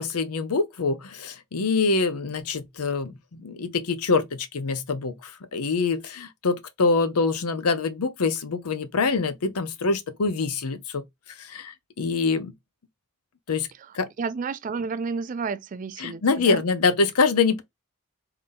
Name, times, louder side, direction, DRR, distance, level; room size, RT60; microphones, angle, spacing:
voice 1, 0.0-11.0 11.4-12.5 13.5-13.7 13.9-14.1 16.0-17.6, left 4 dB, 90° left, 0.7 m, -25 dB
voice 2, 13.7-16.6, right 5 dB, 35° right, 0.3 m, -32 dB
3.7 x 2.9 x 3.4 m
head